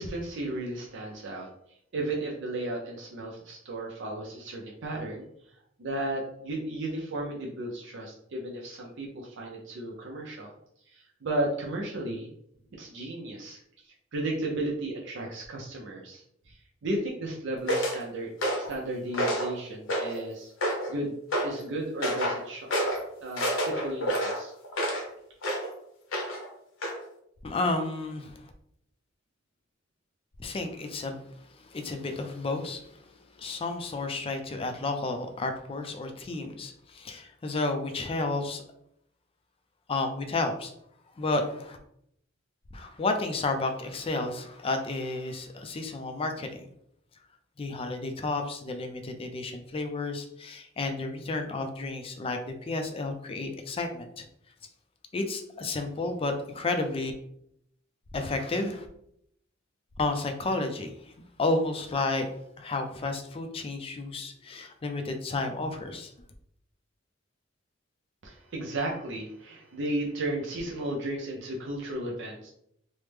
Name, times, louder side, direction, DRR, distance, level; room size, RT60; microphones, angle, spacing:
voice 1, 0.0-1.5 1.9-5.3 5.8-10.5 10.9-12.3 12.7-20.5 20.9-21.1 21.4-22.7 23.2-24.5 68.2-72.5, right 1 dB, 65° right, -1 dB, 0.5 m, -34 dB
sound 1, 17.7-18.0 18.4-18.7 19.1-19.5 19.9-20.2 20.6-20.9 21.3-21.5 22.0-22.4 22.7-23.0 23.4-25.1 25.4-25.7 26.1-26.5 26.8-27.0, equal, 70° left, 0.8 m, -28 dB
voice 2, 27.4-28.4 30.4-31.2 31.6-38.6 39.9-40.7 41.2-41.8 42.7-46.7 47.6-54.3 55.1-57.1 58.1-58.9 60.0-61.1 61.4-62.3 62.6-66.1, left 2 dB, 30° left, 6 dB, 0.4 m, -31 dB
3.1 x 2.0 x 3.3 m, 0.72 s
head